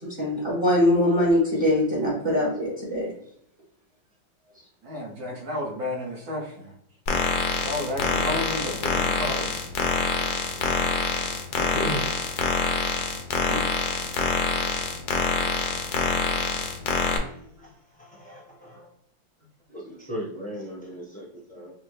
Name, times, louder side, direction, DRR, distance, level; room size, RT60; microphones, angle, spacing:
voice 1, 0.0-3.1 13.5-13.6, left 1 dB, 35° right, -5 dB, 1.2 m, -22 dB
voice 2, 4.8-6.7 7.6-9.5 16.8-16.9 17.6-17.7, left 1 dB, 60° right, -1 dB, 1.3 m, -32 dB
sound 1, 7.1-17.2, left 4 dB, 75° left, 1.4 m, -26 dB
voice 3, 11.6-12.1 17.6-18.9 19.7-21.7, right 1 dB, 5° left, -5 dB, 0.6 m, -36 dB
5.2 x 2.1 x 3.2 m, 0.72 s
omnidirectional pair, 2.0 m